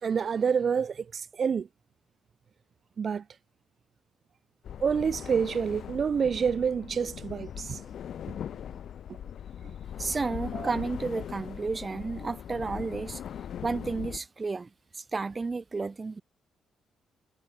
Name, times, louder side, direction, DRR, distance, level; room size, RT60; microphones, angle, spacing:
voice 1, 0.0-1.7 3.0-3.2 4.8-7.8 10.5-10.7, right 6 dB, 45° right, 1.4 m, -28 dB
sound 1, 4.6-14.2, left 9 dB, 65° left, 4.6 m, -40 dB
voice 2, 10.0-13.2 13.6-16.2, right 4 dB, 30° right, 1.5 m, -32 dB
cardioid pair, 90°, 0 cm